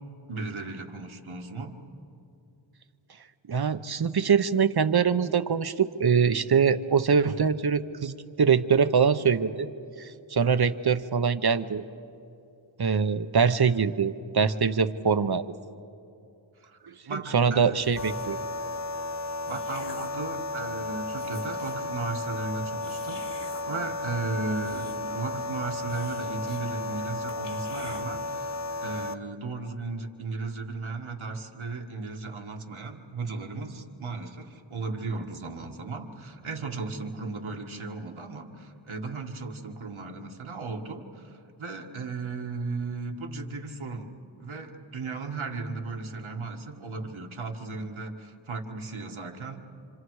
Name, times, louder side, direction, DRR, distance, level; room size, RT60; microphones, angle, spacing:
voice 1, 0.3-1.8 16.6-16.8 17.0-17.7 19.5-23.3 23.7-44.1 44.4-49.6, right 3 dB, 75° right, 2 dB, 1.8 m, -35 dB
voice 2, 3.5-9.7 10.0-11.8 12.8-15.5 16.8-18.4, right 6 dB, 50° right, 12 dB, 0.8 m, -23 dB
sound 1, 17.8-18.4 19.1-20.2 20.8-20.9 21.1-21.9 22.8-23.6 24.3-25.2 25.5-25.6 25.9-26.6 26.9-27.0 27.3-28.0, left 2 dB, 60° left, 2.8 m, -46 dB
sound 2, 18.0-29.1, left 3 dB, 35° left, 0.7 m, -34 dB
28.5 x 26.5 x 4.8 m, 2.6 s
wide cardioid pair, 55°, 48 cm